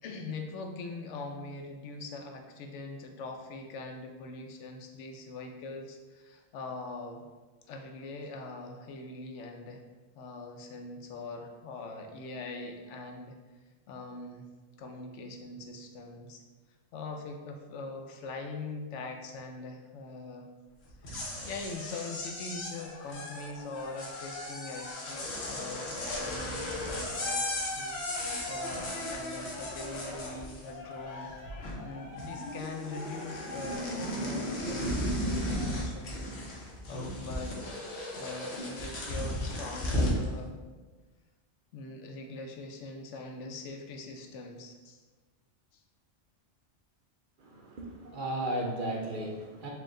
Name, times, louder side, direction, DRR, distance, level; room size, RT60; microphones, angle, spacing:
voice 1, 0.0-7.2 7.7-9.8 10.2-13.4 13.9-14.5 14.8-16.4 16.9-20.5 21.5-31.3 31.8-34.9 35.2-36.4 36.9-37.7 38.1-40.8 41.7-45.0, left 3 dB, 90° left, 4 dB, 0.9 m, -42 dB
sound 1, 20.9-30.9 31.2-31.9 32.2-40.2, left 1 dB, 65° left, 1.1 m, -35 dB
Cheering, 22.7-29.0 29.4-36.0 36.6-36.7, left 3 dB, 50° left, 0.7 m, -48 dB
voice 2, 47.4-49.7, right 1 dB, 55° right, -1 dB, 0.7 m, -35 dB
4.6 x 2.2 x 3.7 m, 1.3 s
omnidirectional pair, 1.2 m